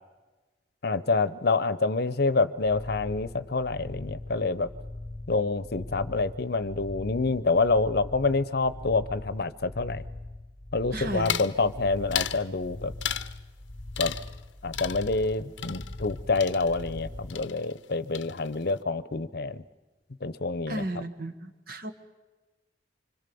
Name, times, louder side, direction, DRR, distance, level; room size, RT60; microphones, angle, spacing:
voice 1, 0.8-4.7 5.3-10.0 10.7-12.9 14.0-14.2 14.6-19.6 20.2-20.8, left 3 dB, 60° left, 15 dB, 0.8 m, -27 dB
sound 1, 2.6-17.3, left 1 dB, 30° left, 1.0 m, -41 dB
voice 2, 10.9-11.4 20.7-21.9, right 1 dB, 55° right, 7 dB, 1.6 m, -34 dB
sound 2, 11.2-11.6 12.1-12.4 13.0-13.4 13.9-14.5 14.7-17.0 17.3-17.9 18.1-18.7, left 10 dB, 90° left, 0.8 m, -34 dB
26.0 x 25.5 x 7.0 m, 1.2 s
head